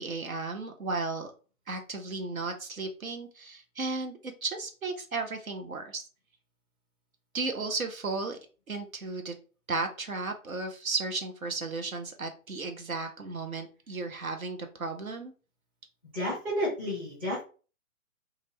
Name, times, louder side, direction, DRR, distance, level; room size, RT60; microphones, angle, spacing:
voice 1, 0.0-1.3 1.7-6.0 7.3-8.4 8.7-9.3 9.7-15.3, right 3 dB, 80° right, 5 dB, 0.8 m, -34 dB
voice 2, 16.1-17.4, equal, 10° right, -7 dB, 0.5 m, -31 dB
2.6 x 2.5 x 3.1 m, 0.36 s
figure-of-eight pair, 130°, 41 cm